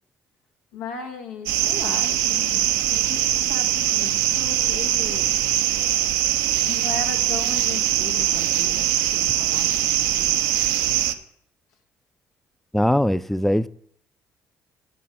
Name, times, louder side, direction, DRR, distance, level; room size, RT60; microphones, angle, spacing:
voice 1, 0.7-5.3 6.6-10.4, left 5 dB, 80° left, 1.1 m, -37 dB
sound 1, 1.5-11.1, right 12 dB, 75° right, 0.6 m, -22 dB
voice 2, 12.7-13.7, equal, 5° left, 0.4 m, -20 dB
8.4 x 6.0 x 6.4 m
hypercardioid pair, 50°, 8 cm